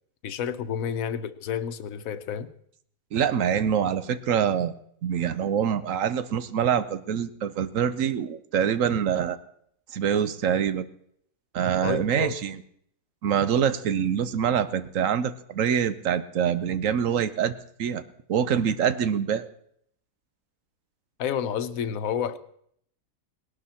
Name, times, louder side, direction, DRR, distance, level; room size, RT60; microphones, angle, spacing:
voice 1, 0.2-2.5 11.8-12.3 21.2-22.4, left 8 dB, 80° left, 13 dB, 1.2 m, -30 dB
voice 2, 3.1-4.7 5.0-9.4 9.9-10.9 11.5-12.6 13.2-18.0 18.3-19.5, right 8 dB, 70° right, 13 dB, 1.1 m, -25 dB
19.0 x 12.0 x 4.2 m, 0.67 s
omnidirectional pair, 1.5 m